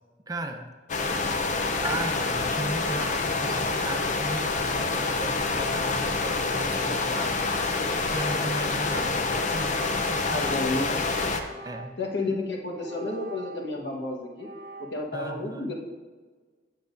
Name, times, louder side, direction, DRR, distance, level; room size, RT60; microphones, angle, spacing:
voice 1, 0.3-0.6 1.8-9.8 10.1-11.0 11.6-12.0 15.1-15.7, right 1 dB, 20° right, 6 dB, 0.6 m, -36 dB
sound 1, 0.9-11.4, left 3 dB, 45° left, 0.6 m, -27 dB
sound 2, 9.7-10.8 11.4-12.1 12.7-14.0 14.4-15.0, right 2 dB, 55° right, 0.9 m, -43 dB
voice 2, 10.3-10.9 12.0-14.5 14.8-15.7, left 2 dB, 75° left, -1 dB, 1.2 m, -31 dB
9.4 x 7.0 x 2.6 m, 1.4 s
head